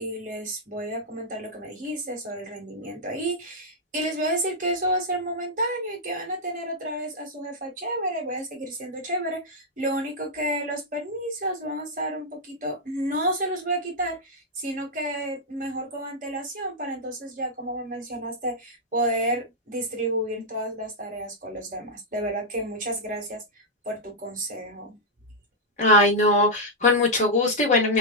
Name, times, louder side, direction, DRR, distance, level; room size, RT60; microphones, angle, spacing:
voice 1, 0.0-23.4 23.9-25.0, right 1 dB, 45° right, 1.9 m, -30 dB
voice 2, 25.8-28.0, left 2 dB, 40° left, 1.6 m, -20 dB
4.3 x 3.4 x 2.3 m
head